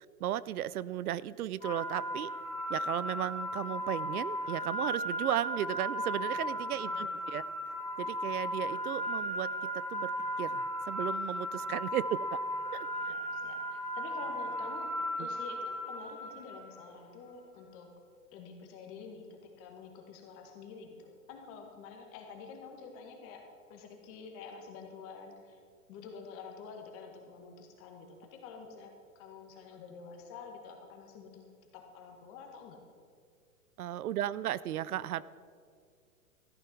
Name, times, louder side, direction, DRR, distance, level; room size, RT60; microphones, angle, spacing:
voice 1, 0.0-2.3 2.7-7.4 8.0-10.1 10.4-12.4 12.7-13.1 15.2-15.3 33.8-35.2, right 12 dB, 85° right, 19 dB, 0.5 m, -35 dB
sound 1, 1.6-16.7, equal, 15° left, 1.7 m, -36 dB
voice 2, 6.7-7.2 11.7-11.8 13.1-14.9 15.2-17.9 18.3-23.4 23.7-25.6 25.9-31.5 31.7-32.8, left 5 dB, 30° left, 3 dB, 1.8 m, -48 dB
14.0 x 9.1 x 4.5 m, 2.2 s
hypercardioid pair, 135°, 43 cm